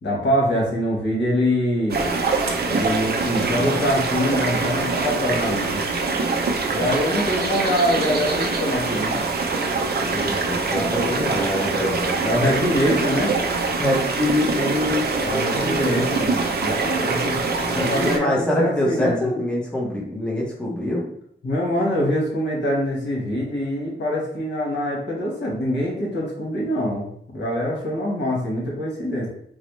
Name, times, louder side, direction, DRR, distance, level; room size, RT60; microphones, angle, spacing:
voice 1, 0.0-2.0 2.7-5.8 6.7-9.2 12.2-13.3 15.2-17.4 17.7-19.3 21.4-27.1 27.3-29.3, equal, 70° left, -3 dB, 1.2 m, -24 dB
sound 1, 1.9-18.2, right 3 dB, 60° right, 0.5 m, -24 dB
voice 2, 10.1-12.8 13.8-16.0 17.7-21.1, left 1 dB, 5° left, -3 dB, 0.7 m, -25 dB
4.0 x 2.0 x 3.0 m, 0.67 s
wide cardioid pair, 155°, 19 cm